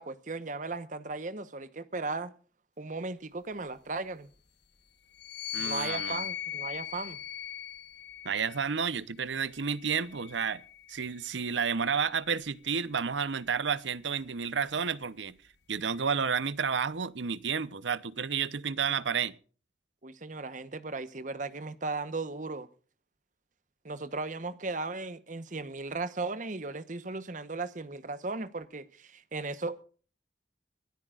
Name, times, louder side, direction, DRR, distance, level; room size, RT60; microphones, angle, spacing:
voice 1, 0.0-2.3 2.8-4.3 5.6-7.2 20.0-22.7 23.8-29.8, right 3 dB, 45° right, 1.0 m, -36 dB
sound 1, 5.1-8.7 9.6-11.2, left 10 dB, 70° left, 1.1 m, -39 dB
voice 2, 5.5-6.2 8.2-10.6 10.9-15.4 15.7-19.3, right 6 dB, 85° right, 0.8 m, -31 dB
24.5 x 13.5 x 2.4 m
head